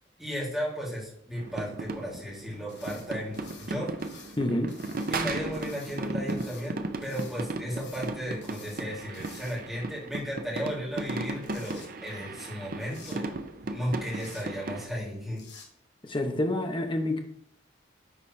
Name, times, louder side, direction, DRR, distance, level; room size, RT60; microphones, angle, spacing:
voice 1, 0.2-4.2 5.1-13.2 13.7-15.4, equal, ahead, -6 dB, 2.7 m, -35 dB
sound 1, 1.4-14.9, right 2 dB, 50° right, 0.6 m, -36 dB
sound 2, 2.7-3.1 3.3-4.4 4.7-5.1 5.5-6.7 7.0-7.4 7.7-8.1 8.4-8.8 9.1-9.8 11.1-11.9 12.9-13.2 14.1-14.4 15.3-15.7, left 5 dB, 60° left, 1.5 m, -50 dB
voice 2, 4.4-4.8 16.0-17.2, left 1 dB, 25° left, 4 dB, 0.9 m, -28 dB
9.7 x 4.2 x 3.2 m, 0.69 s
head